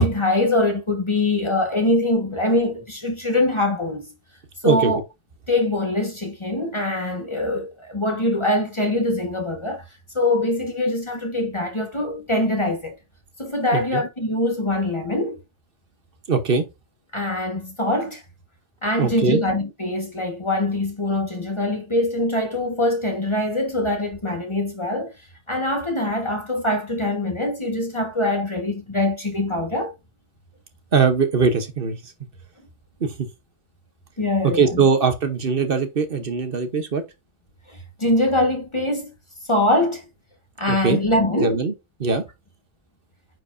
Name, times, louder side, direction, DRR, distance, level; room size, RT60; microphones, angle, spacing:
voice 1, 0.0-4.1 4.6-5.0 5.5-9.8 10.1-12.9 13.4-15.4 17.1-18.2 18.8-25.1 25.5-29.9 34.2-34.8 37.7-39.1 39.5-40.0 40.6-41.6, left 1 dB, 25° left, 1.5 m, -23 dB
voice 2, 16.3-16.7 19.0-19.4 30.9-32.1 33.0-33.3 34.4-37.0 40.7-41.0 41.4-41.7 42.0-42.2, right 5 dB, 55° right, 1.2 m, -21 dB
9.1 x 4.8 x 2.6 m
omnidirectional pair, 1.2 m